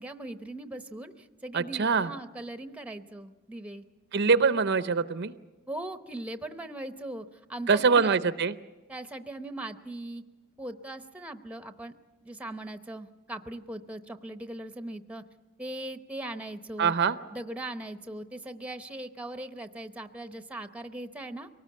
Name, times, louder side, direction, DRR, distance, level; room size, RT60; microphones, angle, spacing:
voice 1, 0.0-3.8 5.7-7.2 7.5-8.2 8.9-10.2 10.6-11.9 12.2-15.2 15.6-17.0 17.3-21.5, right 1 dB, 5° right, 9 dB, 0.8 m, -39 dB
voice 2, 1.5-2.1 4.1-5.3 7.7-8.5 16.8-17.2, right 5 dB, 50° right, 13 dB, 0.6 m, -24 dB
24.0 x 19.0 x 8.5 m, 1.2 s
head